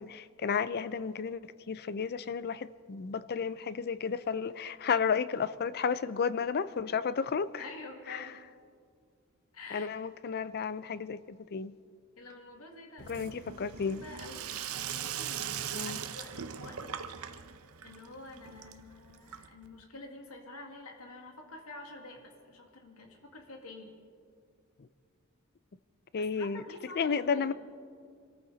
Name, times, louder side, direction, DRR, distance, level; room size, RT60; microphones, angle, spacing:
voice 1, 0.0-7.7 8.1-8.3 9.7-11.8 13.1-14.0 15.7-16.0 24.8-24.9 26.1-26.6 27.0-27.5, left 6 dB, 45° left, 0.4 m, -32 dB
voice 2, 7.6-8.4 9.5-9.9 12.2-13.3 13.6-14.5 14.9-17.1 17.8-24.0 26.2-27.5, left 2 dB, 85° left, 2.2 m, -48 dB
Sink (filling or washing), 13.0-19.8, right 8 dB, 85° right, 0.8 m, -40 dB
25.5 x 14.0 x 4.0 m
head